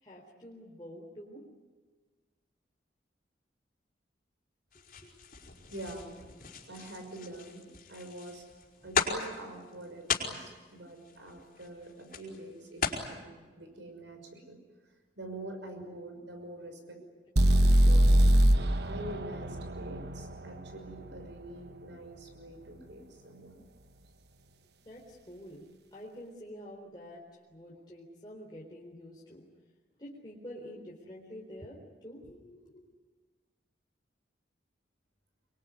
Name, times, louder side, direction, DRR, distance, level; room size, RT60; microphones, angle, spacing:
voice 1, 0.0-1.4 5.0-5.1 8.8-8.9 24.8-25.6 25.9-27.2 27.5-29.5 30.0-32.8, equal, 25° left, -4 dB, 3.9 m, -47 dB
sound 1, 4.7-13.0, left 5 dB, 50° left, 5.2 m, -37 dB
voice 2, 5.7-6.2 6.7-7.6 7.9-8.4 8.8-14.6 15.2-17.0 17.4-18.3 18.8-23.5, right 1 dB, 85° right, 5 dB, 6.1 m, -45 dB
sound 2, 17.4-21.3, right 1 dB, 65° right, 1.1 m, -23 dB
26.5 x 23.0 x 9.6 m, 1.4 s
head